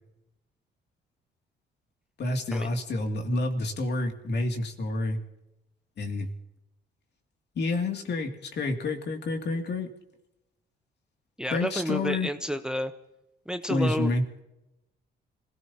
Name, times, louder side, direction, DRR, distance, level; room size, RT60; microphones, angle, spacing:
voice 1, 2.2-5.2 6.0-6.3 7.6-9.9 11.5-12.3 13.7-14.2, left 2 dB, 60° left, 3 dB, 2.7 m, -28 dB
voice 2, 11.4-12.9 13.5-14.1, equal, 5° right, 8 dB, 0.9 m, -30 dB
27.5 x 17.0 x 2.9 m, 0.89 s
cardioid pair, 90°, 20 cm